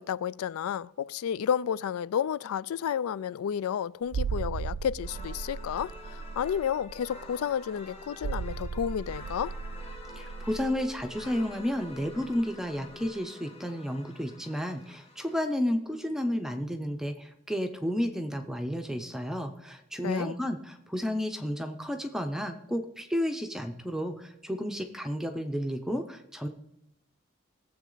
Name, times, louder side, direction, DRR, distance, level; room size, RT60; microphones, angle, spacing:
voice 1, 0.0-9.5 20.0-20.4, left 8 dB, 80° left, 0.3 m, -31 dB
sound 1, 4.1-12.5 12.8-12.9, right 5 dB, 80° right, 0.4 m, -37 dB
sound 2, 5.0-15.4, left 2 dB, 30° left, 1.4 m, -48 dB
voice 2, 10.1-26.5, equal, ahead, 0.6 m, -32 dB
19.0 x 7.4 x 3.9 m
head